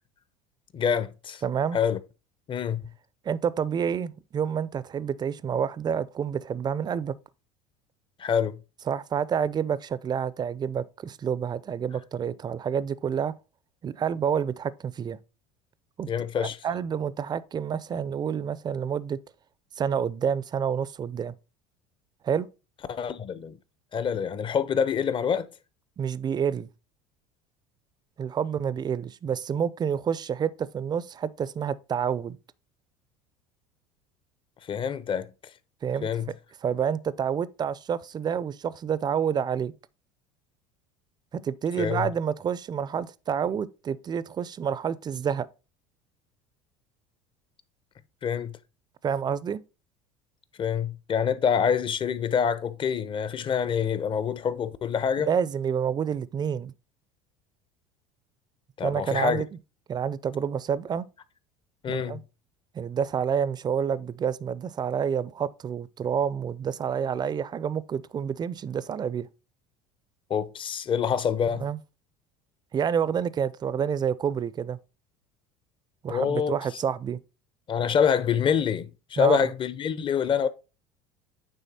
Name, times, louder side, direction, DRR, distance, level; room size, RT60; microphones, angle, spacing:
voice 1, 0.7-1.4 1.7-2.0 2.5-2.8 8.2-8.6 16.1-16.6 22.9-23.6 23.9-25.5 34.7-35.3 36.0-36.3 41.8-42.1 48.2-48.6 50.6-55.3 58.8-59.4 61.8-62.2 70.3-71.7 76.1-76.6 77.7-80.5, left 7 dB, 35° left, 0.7 m, -26 dB
voice 2, 1.4-1.8 3.2-7.1 8.9-13.3 13.8-15.2 16.0-16.1 16.4-19.2 19.8-21.3 22.2-22.5 26.0-26.7 28.2-32.4 35.8-36.1 36.6-39.7 41.3-45.5 49.0-49.6 55.2-56.7 58.8-59.5 59.9-61.1 61.9-62.2 62.7-69.3 71.6-71.8 72.7-74.8 76.0-77.2 79.2-79.5, right 7 dB, 30° right, 0.5 m, -28 dB
9.1 x 3.4 x 4.2 m
supercardioid pair, 90°, 15 cm